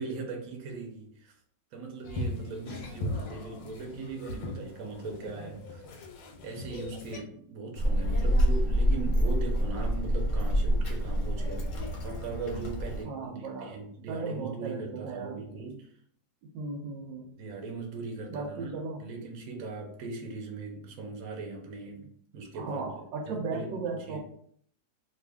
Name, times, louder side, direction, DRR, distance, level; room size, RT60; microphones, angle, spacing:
voice 1, 0.0-1.3 1.7-5.8 6.4-11.7 12.0-15.9 17.4-18.7 19.0-24.2, right 4 dB, 60° right, 2 dB, 1.1 m, -39 dB
sound 1, 2.0-7.2, left 2 dB, 85° left, 1.3 m, -39 dB
Child speech kid speaking, 7.7-13.0, equal, 55° left, 0.9 m, -27 dB
voice 2, 13.1-13.8 14.1-15.4 16.5-17.3 18.3-19.0 22.5-24.2, right 4 dB, 80° right, 2 dB, 1.3 m, -36 dB
3.0 x 2.5 x 3.4 m, 0.64 s
omnidirectional pair, 2.0 m